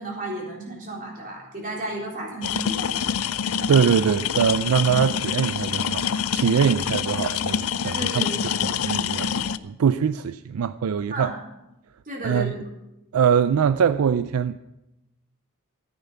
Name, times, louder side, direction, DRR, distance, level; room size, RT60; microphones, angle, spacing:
voice 1, 0.0-3.0 7.8-8.4 11.1-11.3 12.1-12.5, right 1 dB, 40° right, 3.9 m, -33 dB
sound 1, 2.4-9.6, left 8 dB, 70° left, 0.5 m, -26 dB
voice 2, 3.7-6.0 6.3-8.2 8.6-11.3 12.2-12.5 13.1-14.6, right 7 dB, 75° right, 0.4 m, -22 dB
14.0 x 8.9 x 5.7 m
head